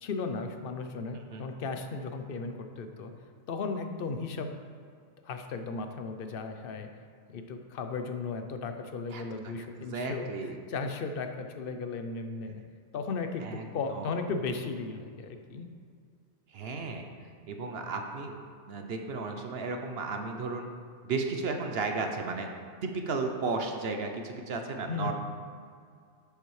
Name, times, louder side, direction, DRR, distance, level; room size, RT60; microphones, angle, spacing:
voice 1, 0.0-3.1 3.5-4.5 5.2-6.9 7.3-12.6 12.9-15.7 24.9-25.1, left 4 dB, 55° left, 6 dB, 0.7 m, -36 dB
voice 2, 9.1-9.5 9.8-10.6 13.4-14.1 16.5-17.1 17.5-18.4 18.7-20.7 21.0-22.5 22.8-25.1, right 4 dB, 55° right, 4 dB, 0.8 m, -34 dB
10.0 x 6.9 x 3.2 m, 2.2 s
omnidirectional pair, 1.4 m